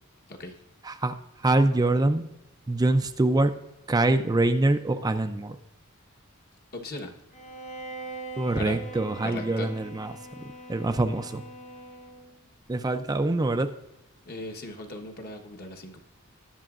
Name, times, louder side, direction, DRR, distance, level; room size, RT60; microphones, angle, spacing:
voice 1, 0.8-1.1 1.4-2.2 2.7-3.5 3.9-5.6 8.4-10.1 10.7-11.4 12.7-13.7, right 2 dB, 20° right, 7 dB, 0.4 m, -24 dB
voice 2, 6.7-7.1 8.6-8.8 9.2-9.7 14.2-16.0, left 2 dB, 50° left, 3 dB, 1.2 m, -38 dB
Bowed string instrument, 7.3-12.4, right 2 dB, 35° left, 0.9 m, -42 dB
19.5 x 6.9 x 2.5 m, 0.93 s
head